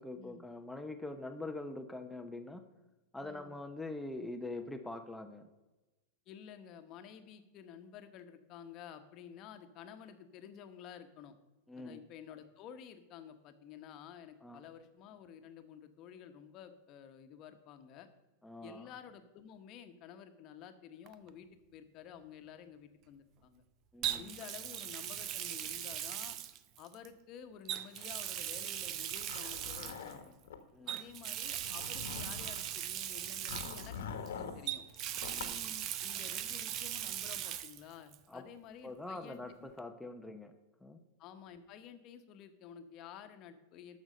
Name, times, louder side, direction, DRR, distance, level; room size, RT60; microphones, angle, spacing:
voice 1, 0.0-2.6 3.1-5.5 11.7-12.0 14.4-14.6 18.4-18.9 23.9-24.3 30.7-31.1 35.2-35.9 38.3-38.4 38.8-40.5 40.8-41.0, left 2 dB, 5° left, 6 dB, 0.7 m, -44 dB
voice 2, 3.2-3.5 6.3-11.3 11.8-18.1 18.6-23.6 24.2-26.4 26.8-30.4 30.9-34.8 36.0-39.7 41.2-44.0, left 8 dB, 45° left, 8 dB, 1.1 m, -52 dB
Water tap faucet, 21.1-21.3 24.0-27.1 27.6-30.1 30.9-34.3 34.7-37.8 38.1-38.2 39.8-39.9, right 11 dB, 45° right, 0.6 m, -39 dB
Zipper (clothing), 29.1-30.6 31.4-32.7 33.5-34.6 35.2-35.6, left 6 dB, 80° left, 1.2 m, -44 dB
12.0 x 6.3 x 5.2 m, 1.1 s
hypercardioid pair, 115°, 0 cm